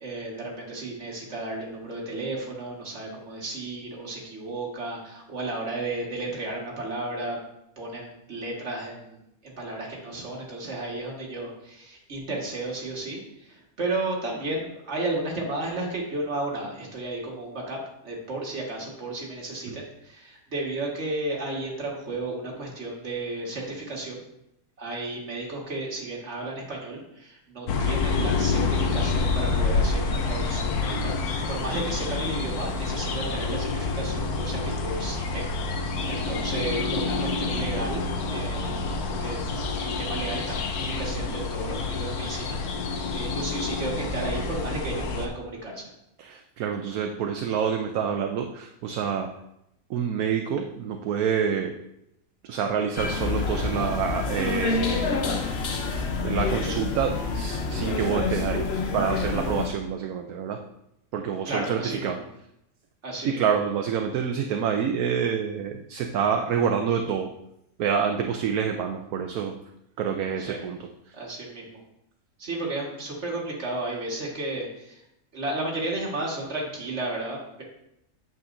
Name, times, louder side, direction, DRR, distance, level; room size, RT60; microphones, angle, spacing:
voice 1, 0.0-7.4 7.8-24.2 24.8-31.1 31.5-38.8 39.2-39.4 39.8-45.9 61.5-62.3 63.0-63.4 70.4-70.6 71.1-71.8 72.4-75.0 75.3-77.6, right 2 dB, 45° right, -2 dB, 1.9 m, -33 dB
sound 1, 27.7-45.3, left 4 dB, 75° left, 1.3 m, -28 dB
voice 2, 46.2-49.3 49.9-51.7 52.4-55.4 56.2-60.6 61.1-62.2 63.2-67.3 67.8-69.6 70.0-70.9, right 7 dB, 75° right, 4 dB, 1.1 m, -27 dB
sound 2, 53.0-59.7, left 4 dB, 50° left, 0.9 m, -27 dB
8.5 x 7.5 x 2.6 m, 0.81 s
omnidirectional pair, 1.6 m